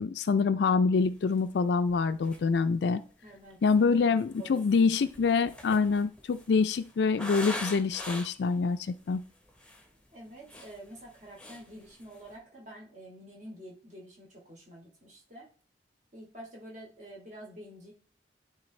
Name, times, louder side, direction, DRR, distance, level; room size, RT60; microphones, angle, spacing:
voice 1, 0.0-3.0 3.6-9.2, left 4 dB, 70° left, 11 dB, 0.4 m, -26 dB
sound 1, 1.4-1.5 1.9-2.0 2.2-2.7 3.5-8.5 9.1-9.2 9.5-9.9 10.3-11.1 11.4-11.7 12.0-12.3, left 1 dB, 5° left, 0.9 m, -42 dB
voice 2, 3.2-3.6 4.2-4.9 10.1-15.5 16.1-17.9, right 1 dB, 40° right, -2 dB, 2.6 m, -48 dB
11.5 x 3.8 x 3.2 m, 0.41 s
head